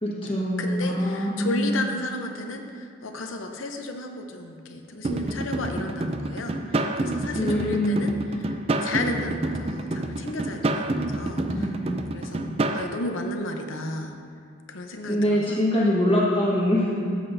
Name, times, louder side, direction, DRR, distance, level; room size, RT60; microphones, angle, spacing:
voice 1, 0.0-1.9 7.4-8.1 11.4-11.9 15.1-17.2, equal, 25° left, -6 dB, 1.4 m, -24 dB
voice 2, 0.6-11.8 12.1-14.2 14.7-15.6, left 2 dB, 85° left, 4 dB, 0.8 m, -33 dB
sound 1, 5.0-12.9, right 2 dB, 30° right, 0.4 m, -28 dB
13.0 x 7.8 x 2.7 m, 2.3 s
head